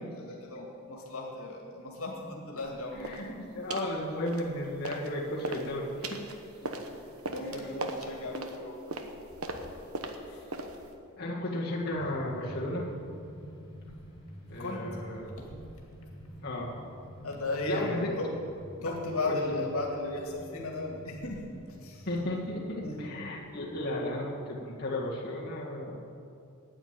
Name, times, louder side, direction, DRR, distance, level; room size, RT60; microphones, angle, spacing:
voice 1, 0.0-3.5 6.6-6.8 7.3-8.8 9.5-9.7 14.5-14.9 15.4-15.5 17.2-18.3 18.8-21.4 21.8-22.1 22.8-23.2, left 2 dB, 80° left, 0 dB, 2.2 m, -36 dB
voice 2, 3.0-6.2 10.3-10.4 11.2-12.9 14.5-15.4 16.4-16.8 17.6-18.2 19.2-19.6 22.1-26.0, left 1 dB, 45° left, -5 dB, 2.0 m, -34 dB
sound 1, 3.0-3.3 3.7-3.9 4.3-5.1 5.4-10.9, right 2 dB, 80° right, 1.1 m, -38 dB
sound 2, 11.7-24.0, equal, 20° left, 2.9 m, -49 dB
9.9 x 9.2 x 9.0 m, 2.5 s
head